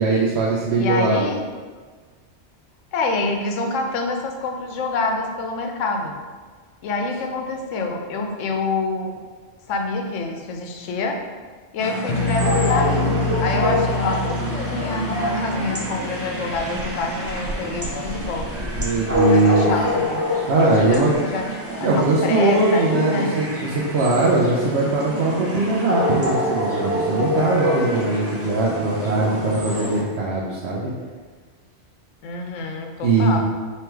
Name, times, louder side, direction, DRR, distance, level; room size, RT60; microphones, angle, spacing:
voice 1, 0.0-1.3 18.7-19.7 20.5-21.1 21.8-30.9 33.0-33.4, right 3 dB, 65° right, -5 dB, 0.9 m, -20 dB
voice 2, 0.8-1.4 2.9-6.2 6.8-9.1 9.7-11.2 11.7-18.7 19.3-20.2 20.6-21.5 21.8-23.4 32.2-33.4, left 3 dB, 85° left, 3 dB, 1.0 m, -26 dB
sound 1, 11.8-30.0, left 1 dB, 20° right, 0.4 m, -26 dB
sound 2, 12.1-17.0, left 3 dB, 50° left, 0.7 m, -27 dB
sound 3, 16.5-21.7, equal, 35° right, 0.8 m, -35 dB
3.3 x 3.0 x 4.5 m, 1.5 s
omnidirectional pair, 1.2 m